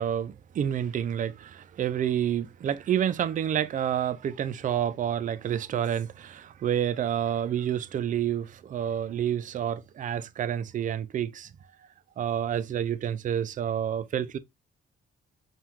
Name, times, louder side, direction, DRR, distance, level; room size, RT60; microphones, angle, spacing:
voice 1, 0.0-11.5 12.2-14.4, right 9 dB, 40° right, 0.4 m, -29 dB
5.5 x 2.3 x 3.0 m
cardioid pair, 90°, 20 cm